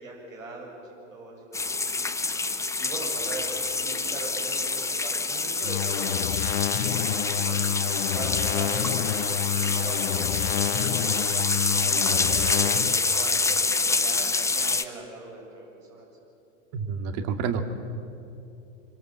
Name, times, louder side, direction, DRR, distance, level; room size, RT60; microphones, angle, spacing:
voice 1, 0.0-2.1 2.8-7.6 8.1-11.3 11.7-16.1, right 2 dB, 80° right, -2 dB, 7.7 m, -40 dB
sound 1, 1.5-14.8, left 3 dB, 5° left, 1.0 m, -27 dB
sound 2, 5.6-13.0, left 12 dB, 55° left, 1.0 m, -29 dB
voice 2, 16.7-17.6, right 6 dB, 45° right, 7 dB, 2.3 m, -28 dB
26.0 x 24.5 x 7.5 m, 2.8 s
hypercardioid pair, 95°, 39 cm